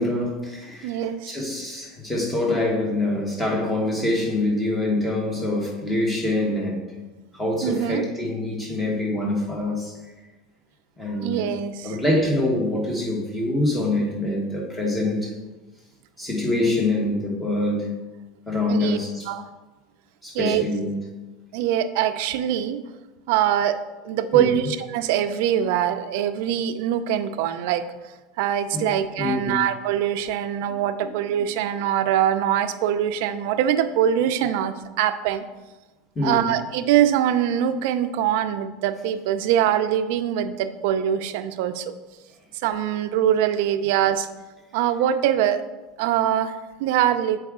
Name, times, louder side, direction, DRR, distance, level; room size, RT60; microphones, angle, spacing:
voice 1, 0.0-6.9 7.3-9.9 11.0-11.6 11.8-15.3 16.2-17.9 18.5-19.3 20.2-21.0 24.3-24.7 28.7-28.9 29.2-29.6 31.3-31.4 36.1-36.5, left 2 dB, 10° left, -2 dB, 1.3 m, -25 dB
voice 2, 0.8-1.4 7.6-8.0 11.2-12.0 16.6-16.8 18.7-19.0 19.3-19.5 20.3-20.6 21.5-22.8 23.3-23.8 24.0-27.8 28.4-35.4 36.2-41.8 42.6-44.3 44.7-45.6 46.0-47.4, right 10 dB, 65° right, 10 dB, 0.4 m, -23 dB
7.7 x 4.7 x 3.6 m, 1.2 s
supercardioid pair, 165°, 0 cm